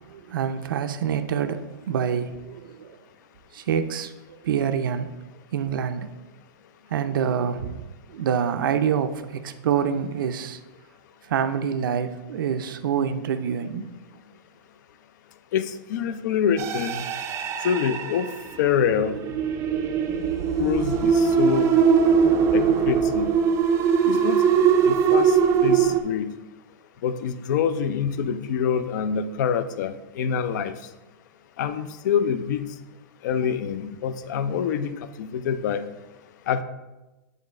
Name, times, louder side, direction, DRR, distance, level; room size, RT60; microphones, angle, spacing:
voice 1, 0.0-3.0 3.5-4.1 4.4-5.1 5.5-6.1 6.9-7.9 8.1-10.6 11.3-13.9, right 8 dB, 80° right, 9 dB, 0.5 m, -26 dB
voice 2, 15.5-17.0 17.6-18.3 18.6-19.1 20.6-21.9 22.5-23.3 24.0-24.4 24.8-26.2 27.0-30.7 31.6-32.7 33.2-35.9 36.5-36.6, left 8 dB, 60° left, 12 dB, 0.5 m, -26 dB
sound 1, 16.6-26.0, right 6 dB, 25° right, 0.4 m, -21 dB
8.3 x 3.7 x 3.2 m, 1.1 s
hypercardioid pair, 145°, 11 cm